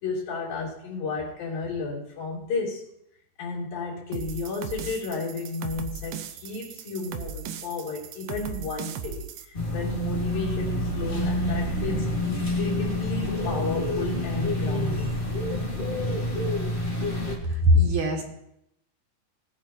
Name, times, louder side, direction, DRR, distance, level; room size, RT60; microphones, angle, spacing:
voice 1, 0.0-2.8 3.4-15.2, left 4 dB, 90° left, -4 dB, 5.1 m, -33 dB
sound 1, 4.1-9.5, right 7 dB, 85° right, 2.5 m, -37 dB
sound 2, 9.5-17.4, left 1 dB, 25° left, 1.3 m, -28 dB
voice 2, 17.5-18.2, left 1 dB, 60° right, 0 dB, 3.0 m, -20 dB
19.0 x 9.2 x 2.9 m, 0.76 s
omnidirectional pair, 4.0 m